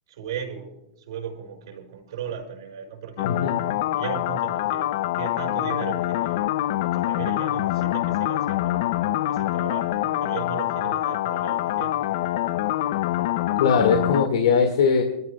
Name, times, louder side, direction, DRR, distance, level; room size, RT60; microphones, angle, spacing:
voice 1, 0.1-0.7 1.1-3.4 3.9-6.5 6.9-8.9 9.3-12.0, right 8 dB, 70° right, 1 dB, 5.0 m, -36 dB
voice 2, 3.2-3.6 13.6-15.0, left 5 dB, 80° left, 4 dB, 1.9 m, -20 dB
sound 1, 3.2-14.3, left 14 dB, 55° left, 0.5 m, -25 dB
27.5 x 13.5 x 2.3 m, 0.94 s
supercardioid pair, 150°, 3 cm